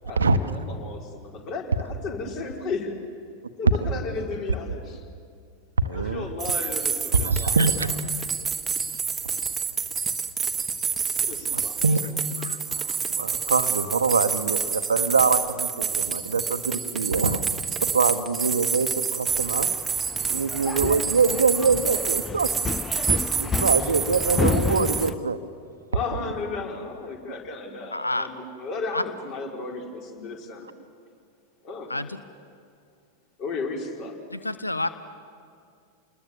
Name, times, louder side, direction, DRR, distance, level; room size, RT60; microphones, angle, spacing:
voice 1, 0.0-2.9 3.6-5.0 5.9-7.9 11.2-12.2 20.1-20.4 23.7-23.9 25.9-30.7 31.6-31.9 33.4-34.1, left 4 dB, 40° left, 0 dB, 4.7 m, -34 dB
voice 2, 5.8-6.3 7.1-8.0 11.5-12.1 12.4-17.4 17.8-19.7 20.3-22.5 23.4-25.4, right 4 dB, 75° right, 12 dB, 1.1 m, -24 dB
sound 1, 6.4-25.1, right 6 dB, 20° right, 1.3 m, -28 dB
sound 2, 19.3-25.1, left 5 dB, 15° left, 0.6 m, -30 dB
voice 3, 27.9-28.3 28.9-29.0 31.9-32.2 34.3-34.9, left 2 dB, 85° left, 13 dB, 0.8 m, -28 dB
29.0 x 21.0 x 7.3 m, 2.3 s
figure-of-eight pair, 90°, 0 cm